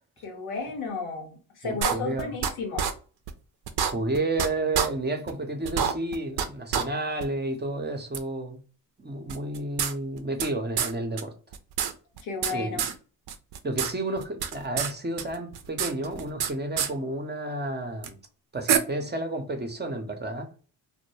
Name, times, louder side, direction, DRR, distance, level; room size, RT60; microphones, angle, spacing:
voice 1, 0.2-2.9 12.2-12.8, left 4 dB, 90° left, 0.8 m, -33 dB
voice 2, 1.6-2.3 3.8-8.6 9.0-11.3 12.5-12.9 13.6-18.2 18.5-20.5, right 2 dB, 20° right, 0.7 m, -31 dB
sound 1, 1.8-2.5 2.8-2.9 3.3-3.4 3.7-4.5 4.7-4.9 5.3-5.4 5.6-6.5 6.7-6.8 7.2-7.3 8.1-8.2 9.3-10.5 10.8-10.9 11.2-11.3 11.5-12.5 12.8-12.9 13.3-13.9 14.2-14.9 15.2-16.5 16.8-16.9 18.0-18.1 18.7-18.8, right 8 dB, 55° right, 0.5 m, -26 dB
2.2 x 2.1 x 3.1 m
supercardioid pair, 45°, 47 cm